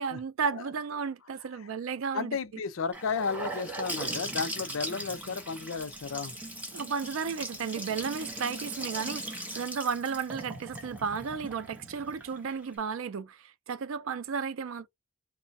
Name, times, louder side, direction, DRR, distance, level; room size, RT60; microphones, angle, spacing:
voice 1, 0.0-2.6 6.7-14.9, right 6 dB, 80° right, 0.4 m, -33 dB
voice 2, 2.1-6.3, left 5 dB, 75° left, 0.5 m, -33 dB
Gurgling / Sink (filling or washing) / Bathtub (filling or washing), 2.9-12.8, right 1 dB, 10° right, 0.8 m, -39 dB
3.1 x 2.1 x 2.6 m
head